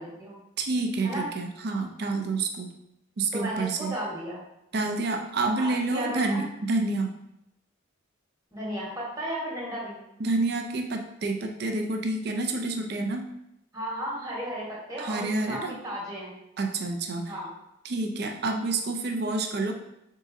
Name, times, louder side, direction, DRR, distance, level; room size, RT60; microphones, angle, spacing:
voice 1, 0.0-0.4 1.0-1.3 3.3-4.4 5.6-6.5 8.5-10.0 13.7-16.3 17.3-17.5, right 1 dB, 20° right, -5 dB, 1.2 m, -34 dB
voice 2, 0.6-2.7 3.2-3.9 4.7-7.1 10.2-13.3 15.0-15.8 16.6-17.3 17.8-19.7, right 3 dB, 55° right, 4 dB, 0.5 m, -28 dB
4.0 x 3.7 x 2.6 m, 0.84 s
head